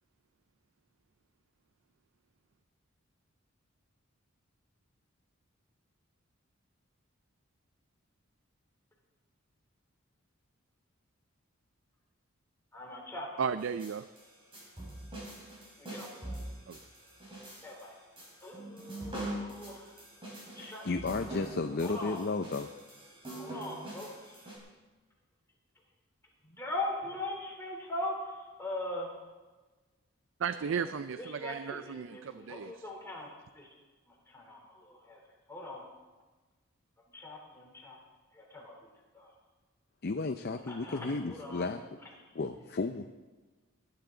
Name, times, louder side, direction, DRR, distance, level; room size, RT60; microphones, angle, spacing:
voice 1, 12.7-13.3 15.8-16.4 17.6-18.0 18.4-19.8 20.2-21.2 21.8-22.2 23.4-24.1 26.6-28.1 28.6-29.1 31.2-33.3 33.6-33.7 34.3-35.2 35.5-35.8 37.1-38.0 38.4-38.9 39.1-39.3 40.7-41.8, left 1 dB, 10° left, -2 dB, 3.4 m, -41 dB
voice 2, 13.4-14.1 16.7-16.8 30.4-32.9, right 6 dB, 65° right, 12 dB, 0.4 m, -35 dB
sound 1, 13.6-24.6, right 1 dB, 25° right, 4.8 m, -44 dB
voice 3, 20.6-22.7 40.0-42.0 42.3-43.1, left 3 dB, 50° left, 7 dB, 0.5 m, -33 dB
19.5 x 11.0 x 3.9 m, 1.3 s
head